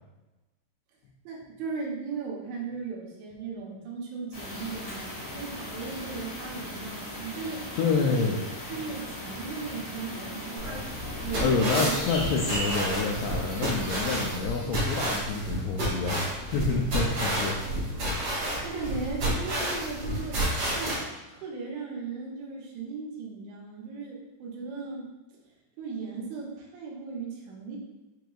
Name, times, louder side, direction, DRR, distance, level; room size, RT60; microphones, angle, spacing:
voice 1, 1.3-7.7 8.1-8.3 8.7-10.9 11.2-12.0 18.6-20.4 20.8-21.0 21.3-25.1 25.8-27.8, right 4 dB, 80° right, -2 dB, 3.1 m, -37 dB
sound 1, 4.3-14.4, left 1 dB, 65° left, 1.4 m, -38 dB
voice 2, 7.8-8.4 11.4-17.6 17.9-18.0, left 4 dB, 85° left, -2 dB, 2.4 m, -28 dB
sound 2, 10.6-21.0, right 1 dB, 60° right, 1.5 m, -30 dB
7.7 x 2.9 x 2.3 m, 1.1 s
omnidirectional pair, 5.3 m